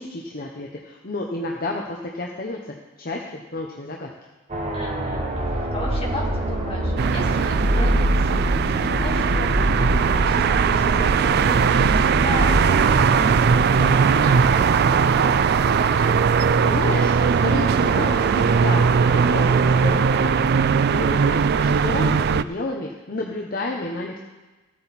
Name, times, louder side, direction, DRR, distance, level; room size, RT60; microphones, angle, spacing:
voice 1, 0.0-2.6 3.0-4.1 16.0-16.1 16.6-24.2, left 2 dB, 45° left, 0 dB, 0.9 m, -31 dB
sound 1, 4.5-20.3, equal, 30° right, 1.2 m, -26 dB
voice 2, 4.7-15.0 21.1-21.4, left 1 dB, 30° left, -3 dB, 2.4 m, -36 dB
sound 2, 7.0-22.4, right 6 dB, 50° right, 0.3 m, -19 dB
15.0 x 8.6 x 4.2 m, 1.2 s
head